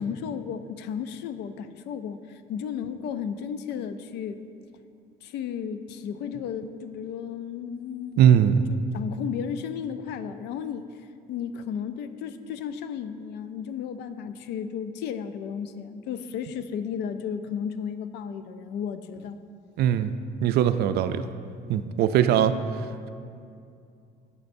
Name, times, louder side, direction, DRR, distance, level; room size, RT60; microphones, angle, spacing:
voice 1, 0.0-4.4 5.2-8.2 8.7-10.9 11.3-19.4, left 7 dB, 80° left, 11 dB, 0.5 m, -34 dB
voice 2, 8.2-8.6 19.8-20.1 20.4-21.3 21.7-22.6, right 9 dB, 70° right, 11 dB, 0.4 m, -20 dB
11.0 x 8.5 x 2.6 m, 2.4 s
cardioid pair, 110°, 17 cm